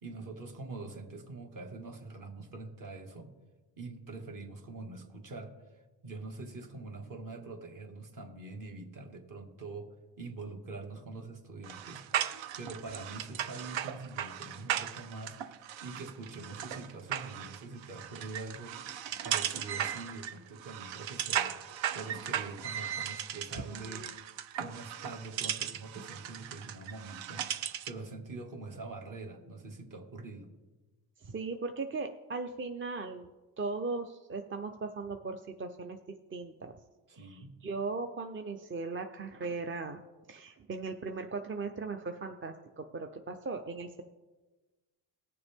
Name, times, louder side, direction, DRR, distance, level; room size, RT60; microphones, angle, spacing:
voice 1, 0.0-3.3 3.8-5.5 6.0-9.9 10.2-12.1 12.6-15.4 15.8-18.8 19.2-21.6 21.9-24.0 24.6-27.5 27.8-30.5 37.1-37.6, right 3 dB, 45° right, 3 dB, 2.0 m, -44 dB
sound 1, 11.6-28.0, right 10 dB, 90° right, 0.8 m, -37 dB
voice 2, 23.6-24.1 31.2-33.3 33.6-36.0 36.3-36.7 37.1-40.0 40.3-44.0, right 3 dB, 30° right, 5 dB, 0.6 m, -38 dB
19.0 x 6.9 x 3.6 m, 1.2 s
cardioid pair, 105°, 43 cm